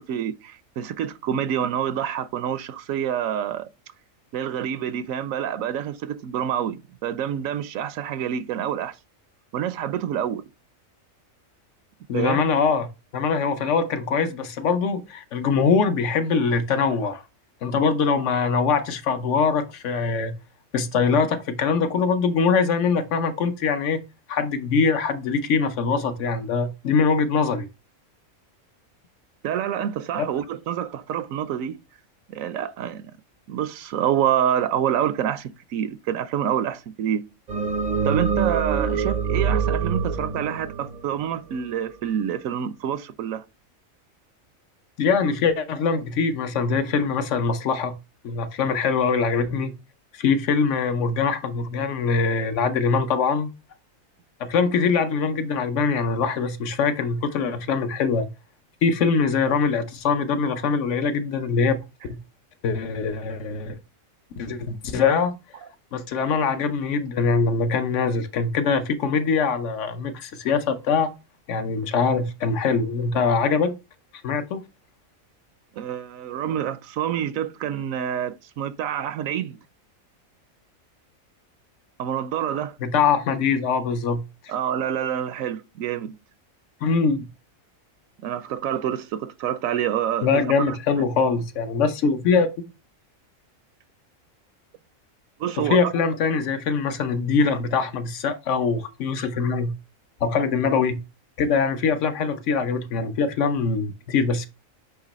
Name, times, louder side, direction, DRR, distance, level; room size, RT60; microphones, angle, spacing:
voice 1, 0.0-3.7 4.3-9.0 9.5-10.4 12.1-12.4 29.4-31.8 32.3-33.1 33.5-37.2 38.0-43.4 75.7-79.6 82.0-82.8 84.5-86.1 88.2-91.1 95.4-95.9, right 9 dB, 80° right, 1.0 m, -27 dB
voice 2, 12.1-17.2 17.6-20.3 20.7-24.0 24.3-27.7 30.2-30.3 45.0-48.0 48.2-49.7 50.1-53.5 54.4-58.3 58.8-61.8 62.6-63.8 64.4-65.4 65.9-71.1 71.5-73.8 74.2-74.6 82.8-84.5 86.8-87.3 90.2-92.5 95.6-99.7 100.2-101.0 101.4-104.5, left 5 dB, 65° left, 1.0 m, -23 dB
sound 1, 37.5-41.9, right 5 dB, 50° right, 0.5 m, -25 dB
8.1 x 3.0 x 4.1 m
omnidirectional pair, 1.4 m